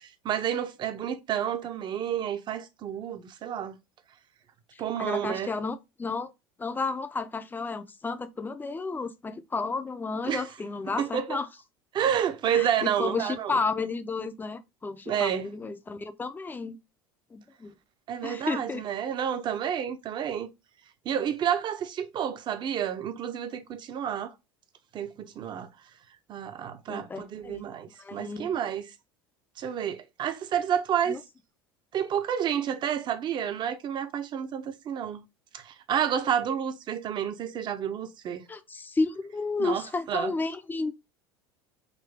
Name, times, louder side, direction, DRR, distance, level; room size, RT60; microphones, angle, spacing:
voice 1, 0.0-3.8 4.8-5.5 10.3-10.4 11.0-11.4 11.9-13.6 15.1-15.5 18.1-20.5 21.0-24.3 24.9-25.7 26.3-28.9 29.6-31.2 31.9-35.2 35.5-38.5 39.6-40.3, right 9 dB, 35° right, 0.7 m, -30 dB
voice 2, 4.7-6.3 6.6-11.5 12.5-16.8 17.3-17.7 18.2-18.8 26.9-27.7 28.0-28.5 31.1-31.2 38.5-40.9, left 3 dB, 15° left, 0.5 m, -32 dB
3.9 x 2.6 x 3.4 m
figure-of-eight pair, 75°, 13 cm